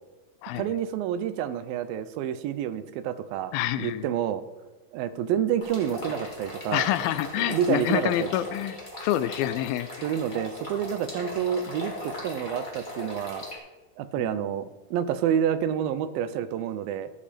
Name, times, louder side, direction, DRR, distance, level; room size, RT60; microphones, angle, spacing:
voice 1, 0.6-4.4 4.9-6.9 7.4-8.3 10.0-13.4 14.0-17.1, right 9 dB, 85° right, 12 dB, 2.5 m, -28 dB
voice 2, 3.5-4.0 6.7-10.1 14.2-14.5, left 13 dB, 90° left, 13 dB, 2.5 m, -27 dB
sound 1, 5.6-13.6, left 1 dB, 15° left, 1.9 m, -38 dB
15.0 x 7.2 x 5.1 m, 1.1 s
omnidirectional pair, 4.1 m